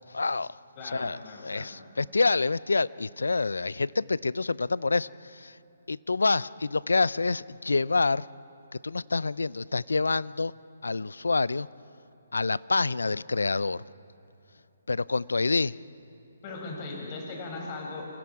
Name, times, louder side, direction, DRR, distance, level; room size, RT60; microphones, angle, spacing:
voice 1, 0.1-0.6 0.8-5.6 5.9-8.3 8.8-10.5 10.8-11.7 12.3-13.8 14.9-15.7, left 3 dB, 85° left, 20 dB, 0.5 m, -27 dB
voice 2, 0.8-1.7 16.4-18.1, left 3 dB, 35° left, -1 dB, 6.5 m, -38 dB
29.0 x 28.0 x 4.8 m, 2.9 s
figure-of-eight pair, 145°, 0 cm